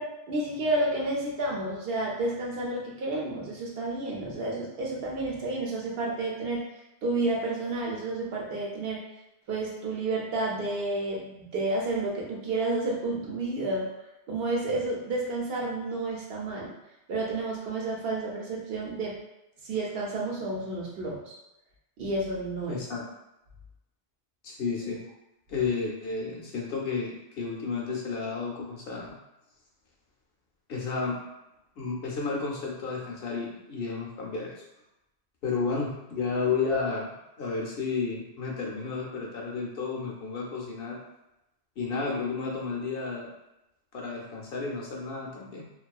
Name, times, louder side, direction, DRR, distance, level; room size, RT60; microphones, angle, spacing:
voice 1, 0.0-6.7 7.0-9.0 9.5-13.9 14.3-16.7 17.1-19.2 19.7-21.3 22.0-22.8, right 2 dB, 65° right, -3 dB, 0.8 m, -30 dB
voice 2, 22.7-23.1 24.4-25.0 25.5-29.1 30.7-31.2 31.8-34.5 35.4-41.0 41.8-43.3 43.9-45.7, left 4 dB, 70° left, -2 dB, 0.8 m, -32 dB
2.6 x 2.3 x 2.2 m, 0.90 s
omnidirectional pair, 1.1 m